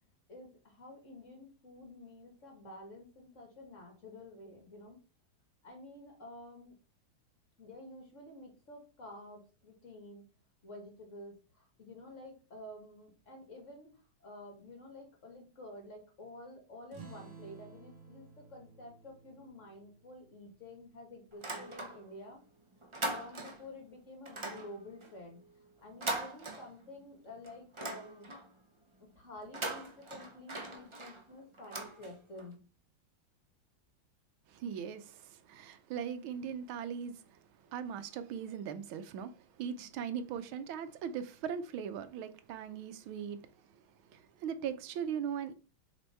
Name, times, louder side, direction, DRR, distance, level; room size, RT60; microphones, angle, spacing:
voice 1, 0.3-5.0 5.6-6.7 7.6-10.3 10.6-22.4 23.0-25.4 25.8-28.3 29.2-32.6 39.8-40.1, left 1 dB, 40° left, 2.3 m, -50 dB
sound 1, 16.9-21.9, right 5 dB, 55° right, 2.5 m, -55 dB
sound 2, 21.3-22.3 22.6-23.8 24.3-27.1 27.4-28.6 29.4-32.5, right 2 dB, 35° right, 0.5 m, -41 dB
voice 2, 34.5-43.4 44.1-45.5, right 8 dB, 85° right, 1.6 m, -39 dB
7.0 x 4.5 x 4.5 m
omnidirectional pair, 2.2 m